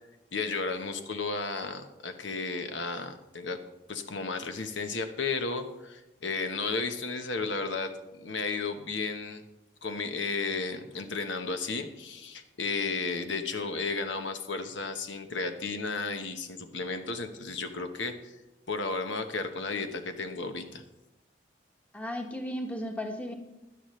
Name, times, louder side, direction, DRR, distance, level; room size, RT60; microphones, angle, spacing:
voice 1, 0.3-3.6 3.9-7.9 8.2-9.4 9.8-18.3 18.7-20.8, left 4 dB, 85° left, 7 dB, 1.0 m, -33 dB
voice 2, 21.9-23.3, equal, 5° left, 3 dB, 1.2 m, -35 dB
17.0 x 11.0 x 3.2 m, 0.98 s
head